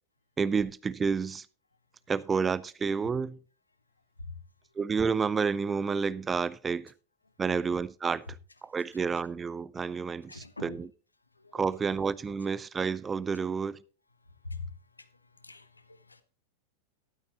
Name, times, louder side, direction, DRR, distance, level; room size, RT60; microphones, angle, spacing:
voice 1, 0.4-1.5 2.1-3.4 4.8-6.9 7.4-8.2 8.6-10.9 11.5-13.8, right 5 dB, 15° right, 0.6 m, -30 dB
voice 2, 10.3-10.8 11.5-11.6 14.4-14.7 15.4-16.2, left 3 dB, 80° left, 1.3 m, -42 dB
13.0 x 12.0 x 3.0 m
figure-of-eight pair, 90°, 0 cm